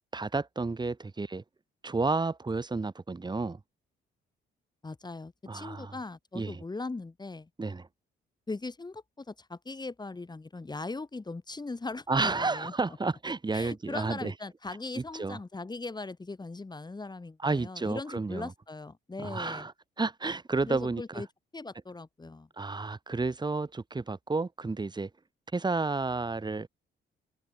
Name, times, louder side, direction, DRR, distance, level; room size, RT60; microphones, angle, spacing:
voice 1, 0.1-1.4 1.8-3.6 5.5-5.9 6.3-6.6 7.6-7.9 12.1-14.3 15.0-15.4 17.4-18.5 19.2-19.7 20.0-21.2 22.6-25.1 25.5-26.7, right 3 dB, 20° right, 2.2 m, -31 dB
voice 2, 4.8-7.5 8.5-13.0 13.5-19.7 20.6-21.3 21.5-22.5, left 3 dB, 20° left, 2.9 m, -39 dB
cardioid pair, 90°, 20 cm